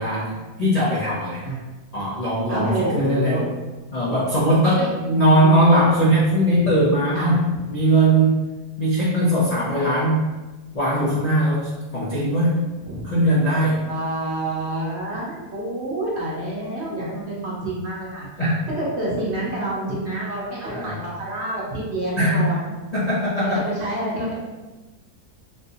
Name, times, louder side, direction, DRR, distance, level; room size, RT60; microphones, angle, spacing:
voice 1, 0.0-1.4 1.9-3.4 3.9-8.5 8.8-10.3 10.7-12.7 13.0-13.9 18.4-18.6 20.7-21.0 22.2-22.4 22.9-23.6, right 1 dB, 80° left, -9 dB, 0.3 m, -20 dB
voice 2, 2.5-3.4 4.7-4.9 6.5-6.7 7.1-7.4 12.9-13.0 13.9-18.3 18.8-22.7 23.4-24.3, right 1 dB, 50° right, -6 dB, 1.1 m, -27 dB
3.5 x 2.7 x 2.7 m, 1.2 s
omnidirectional pair, 1.8 m